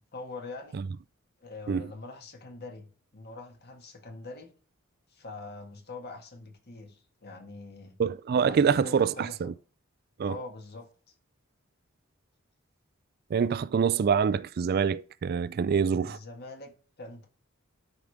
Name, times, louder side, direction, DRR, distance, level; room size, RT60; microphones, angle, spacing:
voice 1, 0.1-0.8 1.4-4.5 5.1-8.0 8.4-9.5 10.3-10.9 15.9-17.3, left 3 dB, 50° left, 1.8 m, -44 dB
voice 2, 8.0-9.5 10.2-10.3 13.3-16.2, right 6 dB, 45° right, 0.3 m, -25 dB
12.5 x 5.0 x 3.5 m
head